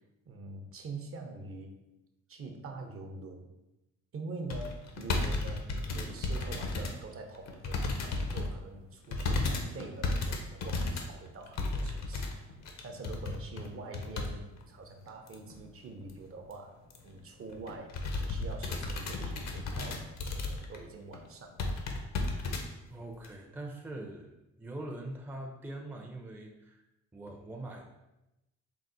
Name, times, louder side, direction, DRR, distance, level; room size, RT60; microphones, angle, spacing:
voice 1, 0.3-1.7 2.3-3.5 4.1-12.3 12.8-16.8 17.0-17.9 18.2-21.7, right 3 dB, 45° right, 4 dB, 0.6 m, -45 dB
sound 1, 4.5-7.0 7.3-8.5 9.1-14.3 14.6-14.7 15.3-15.6 16.0-16.1 16.4-16.5 16.9-17.1 17.5-20.8 21.1-21.2 21.6-22.6 23.2-23.3, left 3 dB, 60° left, 0.7 m, -34 dB
voice 2, 22.9-26.8 27.1-27.9, right 1 dB, 5° right, 1 dB, 0.5 m, -43 dB
4.6 x 2.1 x 3.8 m, 0.95 s
cardioid pair, 90°, 30 cm